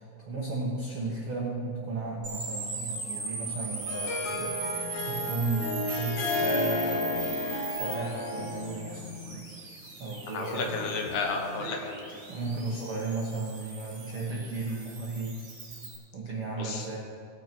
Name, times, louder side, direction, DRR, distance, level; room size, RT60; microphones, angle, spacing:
voice 1, 0.0-7.2 7.7-9.1 10.0-10.9 12.3-15.4 16.1-17.0, right 3 dB, 75° right, -4 dB, 1.2 m, -34 dB
sound 1, 2.2-15.9, right 4 dB, 40° right, 2.9 m, -39 dB
Harp, 3.5-8.8, left 2 dB, 60° left, 2.3 m, -32 dB
Telephone, 4.3-5.3 5.6-5.9 6.3-12.4, left 3 dB, 25° left, 0.8 m, -45 dB
voice 2, 10.3-12.1 16.6-16.9, left 4 dB, 75° left, 2 dB, 3.1 m, -32 dB
19.5 x 6.5 x 4.4 m, 2.4 s
omnidirectional pair, 4.7 m